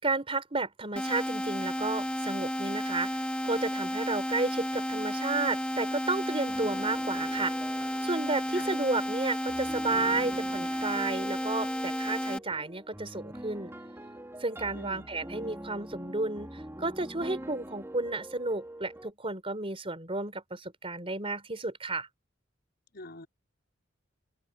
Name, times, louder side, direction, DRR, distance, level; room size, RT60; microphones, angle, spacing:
voice 1, 0.0-7.5 8.0-13.7 14.4-22.1, right 3 dB, 30° right, 4.3 m, -32 dB
sound 1, 1.0-12.4, equal, 5° left, 2.1 m, -32 dB
sound 2, 6.5-19.1, right 1 dB, 15° right, 3.7 m, -45 dB
voice 2, 14.7-15.1 22.9-23.3, left 3 dB, 55° left, 5.7 m, -45 dB
head